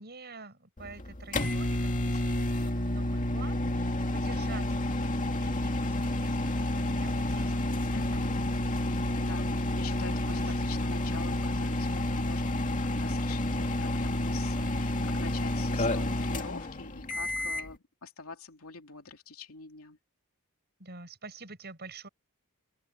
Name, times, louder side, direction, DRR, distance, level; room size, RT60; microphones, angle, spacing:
voice 1, 0.0-8.4 9.9-10.7 20.8-22.1, right 3 dB, 50° right, 6.7 m, -48 dB
sound 1, 0.8-17.7, left 1 dB, 35° left, 2.2 m, -30 dB
voice 2, 7.9-8.3 9.2-20.0, left 4 dB, 75° left, 3.0 m, -45 dB
open air
head